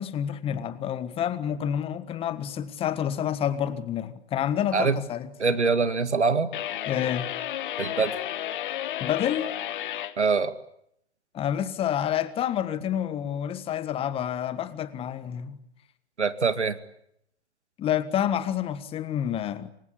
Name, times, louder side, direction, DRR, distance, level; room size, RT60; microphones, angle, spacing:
voice 1, 0.0-5.3 6.9-7.3 9.0-9.5 11.3-15.6 17.8-19.7, left 10 dB, 15° left, 1.5 m, -28 dB
voice 2, 5.4-6.5 7.8-8.1 10.2-10.5 16.2-16.8, right 4 dB, 80° right, 2.2 m, -24 dB
sound 1, 6.5-10.2, left 12 dB, 45° left, 1.7 m, -32 dB
27.0 x 25.0 x 8.6 m
figure-of-eight pair, 125°, 34 cm